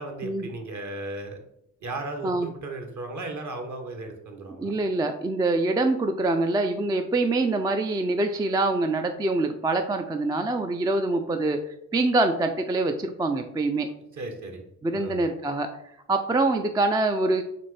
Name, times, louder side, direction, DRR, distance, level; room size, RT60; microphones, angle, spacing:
voice 1, 0.0-1.4 1.8-4.7 14.1-14.6 14.9-15.2, right 2 dB, 50° right, 4 dB, 1.1 m, -36 dB
voice 2, 4.6-11.6 11.9-13.9 14.8-15.7 16.1-17.4, right 2 dB, 10° right, 6 dB, 0.3 m, -25 dB
4.2 x 3.2 x 3.2 m, 0.76 s
supercardioid pair, 50°, 38 cm